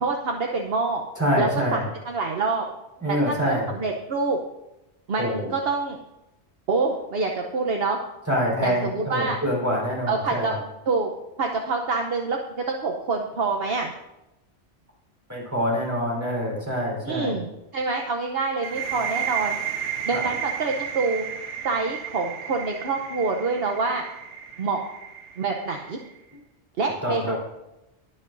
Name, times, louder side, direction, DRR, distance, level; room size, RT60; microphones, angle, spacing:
voice 1, 0.0-1.0 1.4-1.8 2.0-2.6 3.1-4.4 5.1-6.0 6.7-8.0 8.6-9.4 10.1-10.6 10.9-11.1 11.4-13.9 17.0-17.5 17.7-19.6 20.1-21.2 21.6-24.0 24.6-24.8 25.4-26.0 26.8-27.4, right 4 dB, 60° right, 2 dB, 1.0 m, -26 dB
voice 2, 1.2-1.8 3.0-3.7 5.2-5.5 8.3-10.5 15.3-17.4 20.1-20.3 27.0-27.3, equal, 15° right, -4 dB, 3.9 m, -25 dB
sound 1, 18.6-26.2, right 8 dB, 80° right, 1.4 m, -33 dB
21.0 x 7.6 x 2.6 m, 0.93 s
omnidirectional pair, 1.2 m